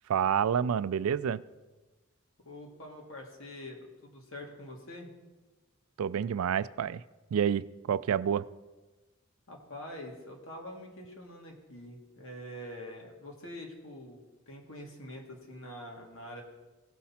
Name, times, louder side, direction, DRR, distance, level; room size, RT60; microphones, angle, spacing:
voice 1, 0.1-1.4 6.0-7.0 7.3-8.5, right 8 dB, 80° right, 17 dB, 0.3 m, -28 dB
voice 2, 2.4-5.1 9.5-14.2 14.5-16.4, left 1 dB, 65° left, 0 dB, 2.0 m, -45 dB
16.5 x 5.8 x 4.2 m, 1.2 s
head